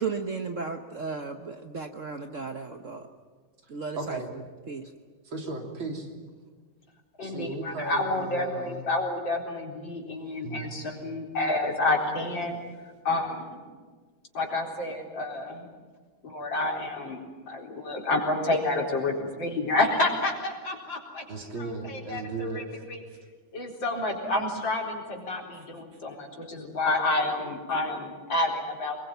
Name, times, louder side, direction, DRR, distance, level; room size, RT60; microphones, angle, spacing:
voice 1, 0.0-3.1 3.7-4.4 4.7-4.9, right 5 dB, 45° right, 6 dB, 1.3 m, -35 dB
voice 2, 4.0-4.3 5.2-6.1 7.2-8.9 10.4-10.7 21.3-22.6 25.5-25.6, right 3 dB, 75° right, 2 dB, 4.0 m, -36 dB
voice 3, 7.2-12.6 13.0-13.6 14.3-15.7 16.2-17.2 17.5-21.2 21.6-22.6 22.9-23.0 23.5-29.0, left 2 dB, 65° left, 1 dB, 4.9 m, -29 dB
25.0 x 21.5 x 9.2 m, 1.5 s
omnidirectional pair, 2.2 m